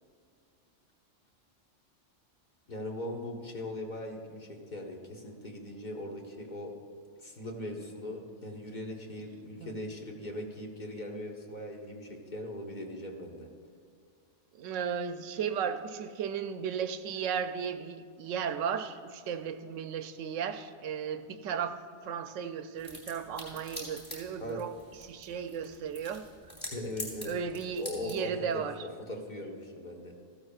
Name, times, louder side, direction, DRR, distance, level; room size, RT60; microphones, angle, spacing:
voice 1, 2.7-6.7 7.2-13.5 24.4-24.6 26.7-27.3 27.8-30.1, left 1 dB, 40° left, 0 dB, 1.3 m, -40 dB
voice 2, 14.6-21.8 22.0-24.7 25.1-26.2 27.3-28.7, right 7 dB, 80° right, 9 dB, 1.0 m, -35 dB
sound 1, 22.7-28.2, equal, 20° left, 3.3 m, -45 dB
15.0 x 12.0 x 2.4 m, 2.3 s
omnidirectional pair, 1.3 m